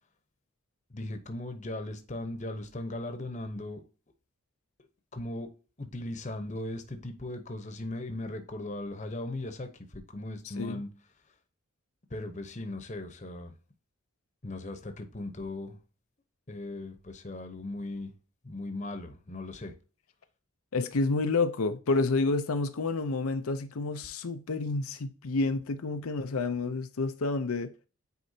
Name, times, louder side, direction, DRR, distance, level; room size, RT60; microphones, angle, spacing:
voice 1, 0.9-3.8 5.1-5.5 5.8-10.9 12.1-13.5 14.4-15.8 16.5-18.1 18.4-19.7, left 2 dB, 35° left, 0.9 m, -38 dB
voice 2, 10.4-10.8 20.7-27.7, left 3 dB, 80° left, 0.6 m, -29 dB
9.4 x 4.4 x 2.7 m
head